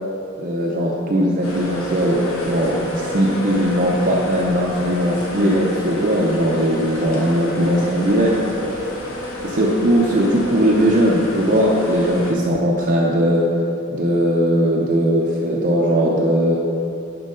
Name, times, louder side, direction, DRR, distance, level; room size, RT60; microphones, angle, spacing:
voice 1, 0.4-8.4 9.4-13.5 13.9-16.6, equal, 40° right, -3 dB, 0.7 m, -19 dB
sound 1, 1.4-12.3, left 1 dB, 80° left, 1.3 m, -30 dB
10.5 x 4.6 x 3.8 m, 2.7 s
head